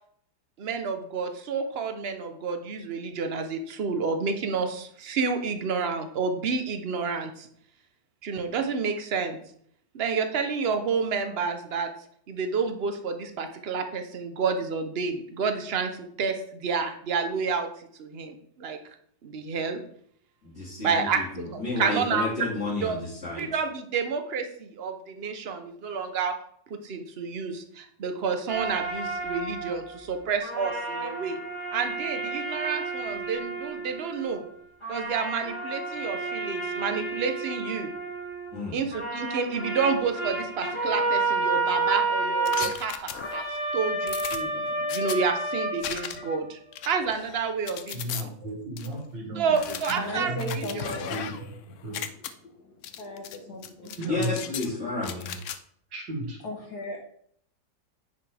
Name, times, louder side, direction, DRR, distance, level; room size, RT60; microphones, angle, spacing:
voice 1, 0.6-7.5 8.2-9.4 9.9-11.9 12.3-18.8 19.2-19.8 20.8-22.3 22.8-23.0 23.4-26.4 26.7-31.4 31.7-34.4 34.9-37.9 38.7-43.4 43.7-44.5 44.9-46.6 46.8-48.3 49.3-51.0, right 5 dB, 50° right, 7 dB, 0.8 m, -29 dB
voice 2, 20.4-21.1 21.6-23.5 38.5-38.8 54.0-55.3, left 3 dB, 35° left, -10 dB, 2.6 m, -31 dB
sound 1, 28.5-30.1 30.4-34.6 34.8-38.6 38.9-46.4, right 3 dB, 15° left, 1.5 m, -31 dB
sound 2, 42.5-43.6 44.1-45.2 45.8-46.4 46.7-48.2 48.8-48.9 49.5-51.5 51.8-52.3 52.8-53.4 53.6-54.7 55.0-55.6, left 9 dB, 80° left, 0.6 m, -37 dB
voice 3, 47.9-51.5 51.8-52.0 53.5-53.6 54.0-54.3 55.9-56.4, right 2 dB, 70° right, 0 dB, 2.7 m, -35 dB
voice 4, 50.0-51.3 51.9-52.1 52.4-54.0 54.4-55.2 56.4-57.0, left 2 dB, 65° left, 1 dB, 1.7 m, -38 dB
9.8 x 5.6 x 3.4 m, 0.66 s
omnidirectional pair, 2.0 m